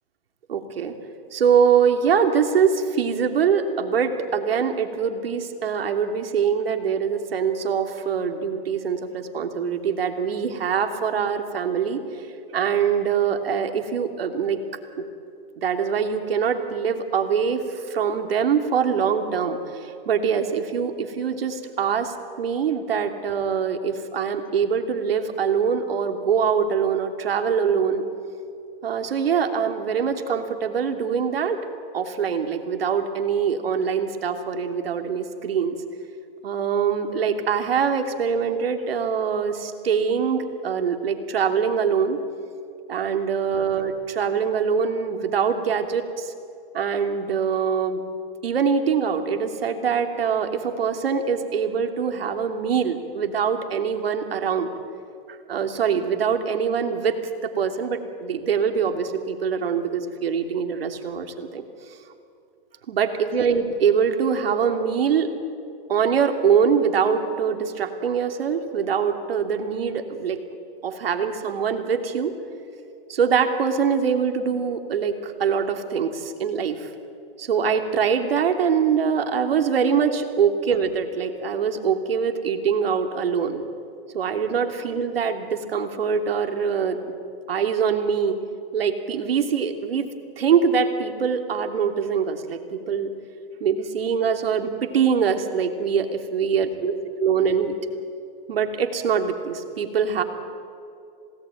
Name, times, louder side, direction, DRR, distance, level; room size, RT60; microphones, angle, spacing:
voice 1, 0.5-1.0 1.3-12.0 12.5-14.6 15.6-28.0 28.8-31.6 31.9-35.7 36.4-42.2 42.9-46.3 46.7-48.0 48.4-54.7 55.3-57.2 57.4-61.6 62.9-65.3 65.9-70.4 70.8-72.3 73.1-76.9 77.4-83.6 84.1-87.1 87.5-88.4 88.7-90.1 90.4-93.1 93.6-96.9 97.2-97.7 98.5-100.2, right 6 dB, 80° right, 6 dB, 3.0 m, -23 dB
27.5 x 18.5 x 9.2 m, 2.5 s
hypercardioid pair, 130°, 29 cm